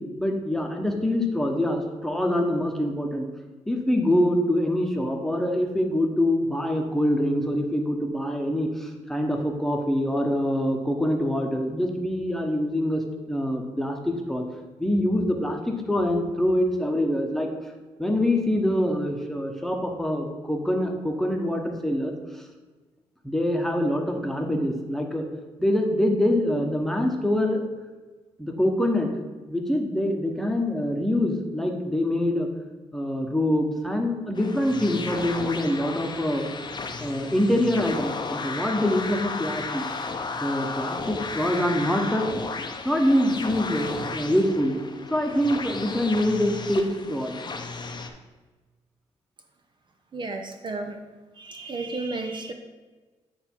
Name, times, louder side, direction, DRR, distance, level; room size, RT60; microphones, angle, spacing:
voice 1, 0.2-3.3 3.7-14.4 14.8-17.5 18.0-22.1 23.2-25.2 25.6-27.6 28.4-29.1 29.5-32.5 32.9-36.5 37.0-39.8 40.4-42.3 42.8-44.7 45.1-47.3, left 1 dB, 5° left, 2 dB, 1.0 m, -25 dB
sound 1, 34.3-48.1, left 4 dB, 40° left, 0.7 m, -34 dB
voice 2, 50.1-51.0 51.3-52.5, right 3 dB, 45° right, 4 dB, 0.7 m, -32 dB
9.1 x 3.4 x 4.5 m, 1.3 s
cardioid pair, 80°, 12 cm